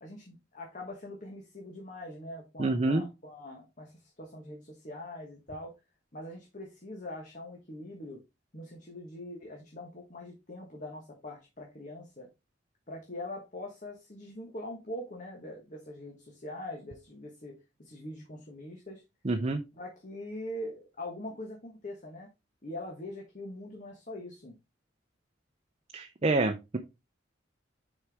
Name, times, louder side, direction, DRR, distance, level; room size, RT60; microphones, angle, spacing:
voice 1, 0.0-5.7 6.1-8.2 8.5-12.3 12.9-17.5 17.8-19.0 19.7-22.3 22.6-24.6, left 1 dB, 40° left, 0 dB, 1.3 m, -43 dB
voice 2, 2.6-3.0 19.2-19.6 25.9-26.8, right 2 dB, 35° right, 6 dB, 0.6 m, -27 dB
6.3 x 4.5 x 3.5 m, 0.24 s
head